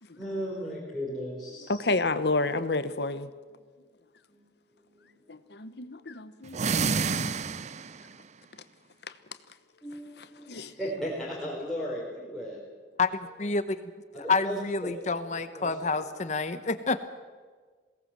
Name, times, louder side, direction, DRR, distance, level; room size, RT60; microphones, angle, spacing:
voice 1, 0.2-1.8 4.3-4.4 4.8-5.1 7.5-7.9 9.8-12.6 14.2-14.9 15.5-16.1, equal, ahead, -6 dB, 4.3 m, -37 dB
voice 2, 1.7-3.3 5.3-6.7 7.0-7.6 10.5-10.7, left 3 dB, 60° left, 12 dB, 1.1 m, -30 dB
sound 1, 6.5-8.1, right 5 dB, 40° right, 0.5 m, -28 dB
voice 3, 13.0-13.6 14.3-17.0, left 4 dB, 40° left, 11 dB, 0.9 m, -28 dB
22.0 x 17.5 x 7.6 m, 1.5 s
head